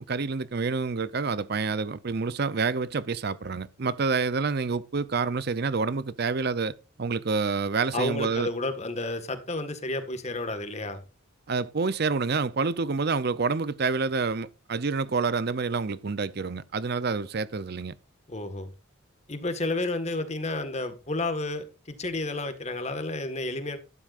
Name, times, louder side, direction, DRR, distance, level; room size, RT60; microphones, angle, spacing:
voice 1, 0.0-8.5 11.5-17.9, right 4 dB, 50° right, 0.6 m, -28 dB
voice 2, 7.9-11.0 18.3-18.7 19.3-23.8, left 2 dB, 35° left, 1.7 m, -31 dB
12.5 x 12.0 x 2.5 m
head